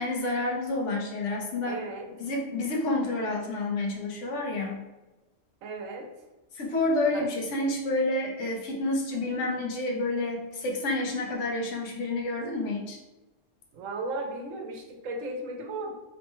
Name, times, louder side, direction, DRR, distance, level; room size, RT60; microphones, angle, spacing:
voice 1, 0.0-1.8 2.2-4.8 6.5-13.0, left 2 dB, 75° left, 0 dB, 1.0 m, -29 dB
voice 2, 1.6-2.1 5.6-6.1 7.1-7.3 13.7-15.9, right 2 dB, 90° right, 2 dB, 1.0 m, -35 dB
3.1 x 2.1 x 3.0 m, 1.1 s
omnidirectional pair, 1.3 m